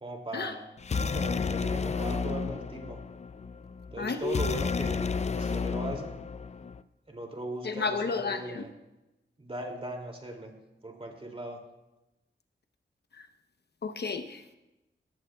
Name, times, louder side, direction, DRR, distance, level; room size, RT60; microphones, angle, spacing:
voice 1, 0.0-0.7 0.9-3.0 3.9-6.2 7.1-8.7 9.4-10.5 10.8-11.6, right 2 dB, 30° right, 2 dB, 2.5 m, -39 dB
sound 1, 0.8-6.8, left 5 dB, 35° left, 0.4 m, -32 dB
voice 2, 4.0-4.6 7.6-8.6 13.2-13.3 13.8-14.5, left 4 dB, 60° left, 7 dB, 0.8 m, -32 dB
19.0 x 14.5 x 2.3 m, 0.97 s
wide cardioid pair, 95°, 19 cm